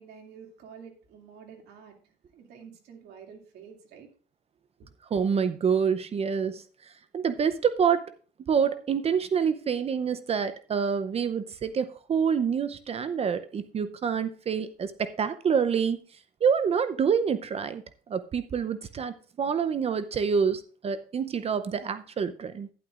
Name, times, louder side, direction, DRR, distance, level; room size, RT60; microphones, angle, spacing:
voice 1, 0.0-4.1 4.8-4.9, right 6 dB, 75° right, 2 dB, 2.5 m, -49 dB
voice 2, 5.1-6.6 7.1-8.0 8.5-16.0 16.4-17.8 18.1-22.7, right 6 dB, 35° right, 12 dB, 0.6 m, -27 dB
11.5 x 10.5 x 2.5 m, 0.39 s
cardioid pair, 110°, 17 cm